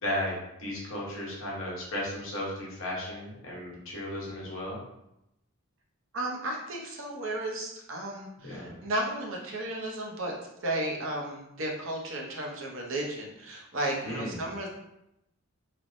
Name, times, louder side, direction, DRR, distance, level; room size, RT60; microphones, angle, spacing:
voice 1, 0.0-0.3 0.6-4.8 8.4-8.7 14.0-14.4, left 1 dB, 60° left, -4 dB, 0.8 m, -35 dB
voice 2, 6.1-10.3 10.6-14.7, right 1 dB, 60° right, -1 dB, 0.6 m, -34 dB
3.2 x 2.0 x 2.5 m, 0.85 s
head